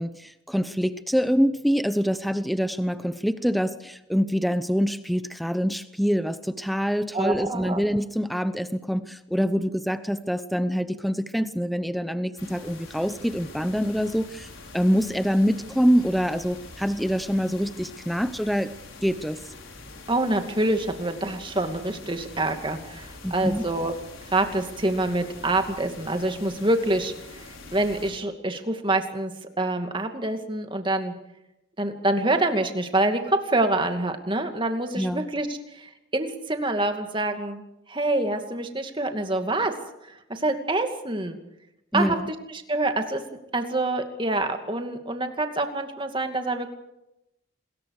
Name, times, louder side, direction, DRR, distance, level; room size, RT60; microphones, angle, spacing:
voice 1, 0.0-14.5 14.7-18.7 19.0-19.4 23.2-23.6 34.9-35.2 41.9-42.3, equal, ahead, 11 dB, 0.9 m, -25 dB
voice 2, 7.1-7.8 20.1-23.9 24.3-27.4 27.7-31.1 31.8-37.6 37.9-39.7 40.0-41.4 41.9-42.2 42.5-43.2 43.5-46.7, right 2 dB, 25° right, 5 dB, 2.5 m, -26 dB
sound 1, 12.4-28.1, left 3 dB, 85° left, 6.0 m, -44 dB
27.5 x 21.5 x 5.0 m, 0.86 s
head